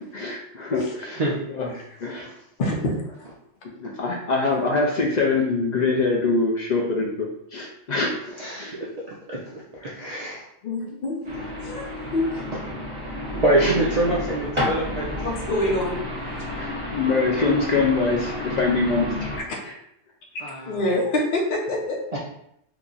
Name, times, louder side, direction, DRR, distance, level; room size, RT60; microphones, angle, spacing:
voice 1, 0.1-1.2 1.6-1.7 2.0-2.3 3.8-8.2 8.5-8.8 9.8-9.9 13.6-13.7 16.5-19.1 19.6-19.7, left 3 dB, 75° left, -1 dB, 0.4 m, -24 dB
voice 2, 2.6-2.9 4.5-4.6 10.6-11.4 11.6-12.4 14.3-14.5 15.2-16.0 19.5-19.6 20.3-22.0, left 1 dB, 50° left, -1 dB, 0.8 m, -26 dB
voice 3, 8.4-10.4 13.4-15.1 20.4-21.0 22.1-22.2, right 1 dB, 65° right, -5 dB, 0.4 m, -25 dB
sound 1, 11.3-19.4, left 1 dB, 25° right, 1.1 m, -31 dB
2.8 x 2.4 x 3.8 m, 0.76 s
omnidirectional pair, 1.3 m